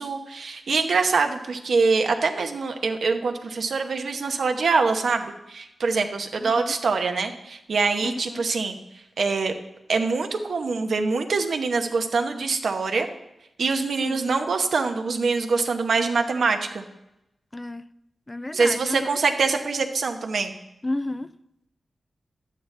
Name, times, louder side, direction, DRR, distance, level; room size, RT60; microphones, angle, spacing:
voice 1, 0.0-8.8 9.2-9.5 9.9-13.1 13.6-16.8 18.5-20.5, right 4 dB, 80° right, 0.9 m, -24 dB
voice 2, 6.4-6.7 8.0-8.5 14.0-14.3 17.5-17.9 18.3-19.1 20.8-21.3, left 2 dB, 25° left, 0.4 m, -32 dB
11.0 x 8.7 x 3.3 m
cardioid pair, 45°, 0 cm